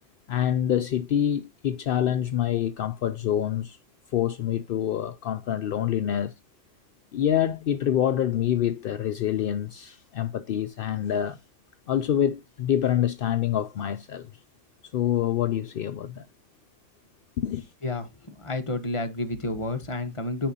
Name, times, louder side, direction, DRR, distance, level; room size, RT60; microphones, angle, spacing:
voice 1, 0.3-3.8 4.1-6.3 7.1-11.4 11.9-14.3 14.9-16.3 17.4-17.7, left 10 dB, 60° left, 0.6 m, -26 dB
voice 2, 17.8-20.5, left 2 dB, 25° left, 1.2 m, -30 dB
10.5 x 4.9 x 2.8 m
omnidirectional pair, 1.4 m